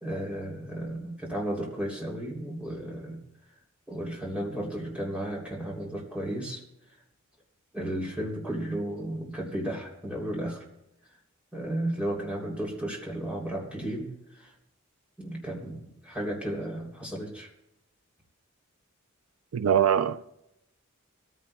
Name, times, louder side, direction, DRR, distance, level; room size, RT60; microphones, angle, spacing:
voice 1, 0.0-3.2 3.9-6.6 7.7-10.6 11.5-14.5 15.2-17.5, right 1 dB, 5° right, 2.9 m, -34 dB
voice 2, 19.5-20.3, right 8 dB, 85° right, 0.4 m, -23 dB
24.5 x 14.5 x 2.2 m
head